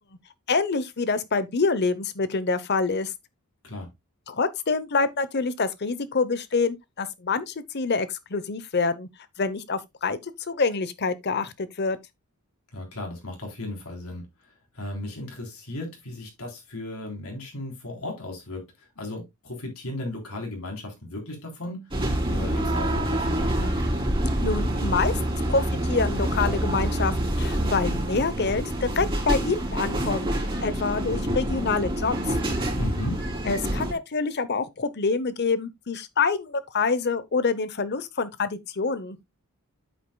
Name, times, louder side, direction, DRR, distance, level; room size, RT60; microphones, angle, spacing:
voice 1, 0.5-3.1 4.3-9.1 9.4-12.0 24.4-25.2 25.5-32.1 33.4-39.2, left 4 dB, 50° left, 0.8 m, -26 dB
voice 2, 12.7-14.3 14.7-18.7 19.0-21.9 22.3-23.8 32.8-33.2, left 1 dB, 75° left, 3.7 m, -35 dB
sound 1, 21.9-33.9, right 1 dB, 25° right, 3.0 m, -26 dB
8.8 x 8.3 x 2.2 m
head